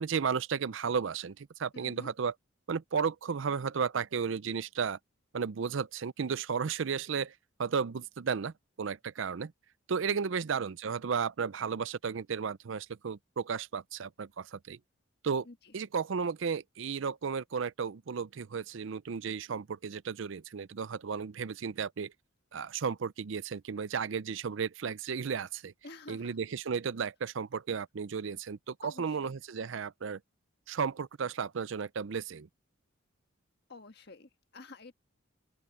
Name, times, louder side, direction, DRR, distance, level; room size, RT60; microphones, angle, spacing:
voice 1, 0.0-2.3 2.7-5.0 5.3-7.3 7.6-9.5 9.9-14.8 15.2-15.5 15.7-22.1 22.5-25.7 26.1-30.2 30.7-32.5, right 6 dB, 70° right, 0.5 m, -34 dB
voice 2, 1.7-2.1 10.1-10.5 15.4-15.7 25.8-26.3 28.8-29.3 33.7-34.9, left 3 dB, 55° left, 1.6 m, -50 dB
open air
head